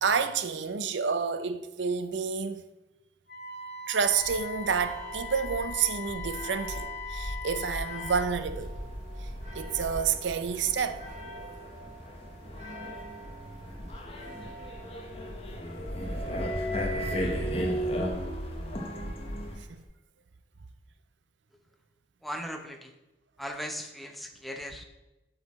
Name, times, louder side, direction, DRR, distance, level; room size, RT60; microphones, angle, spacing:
voice 1, 0.0-2.6 3.9-8.8 9.2-11.1 19.7-19.8, right 6 dB, 85° right, 0.6 m, -29 dB
Wind instrument woodwind instrument, 3.3-8.3, left 4 dB, 65° left, 1.8 m, -40 dB
sound 1, 4.0-19.8, equal, 40° right, 1.9 m, -41 dB
sound 2, 8.3-19.6, equal, 35° left, 1.0 m, -36 dB
voice 2, 22.2-22.9 23.4-24.8, equal, ahead, 0.8 m, -38 dB
7.8 x 6.4 x 4.2 m
head